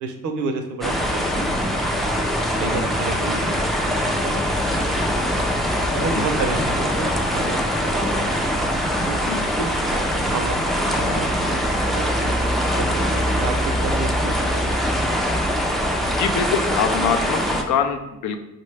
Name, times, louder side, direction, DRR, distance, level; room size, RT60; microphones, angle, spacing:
voice 1, 0.0-2.3 2.6-3.6 3.8-5.5 5.9-8.2 8.4-8.6 9.1-10.6 10.9-12.3 12.8-14.7 15.1-15.4, right 3 dB, 70° right, 5 dB, 0.6 m, -31 dB
sound 1, 0.8-17.6, equal, ahead, 0.3 m, -22 dB
voice 2, 16.1-18.4, left 7 dB, 75° left, 7 dB, 0.4 m, -24 dB
3.7 x 2.2 x 3.2 m, 0.96 s
cardioid pair, 90°, 30 cm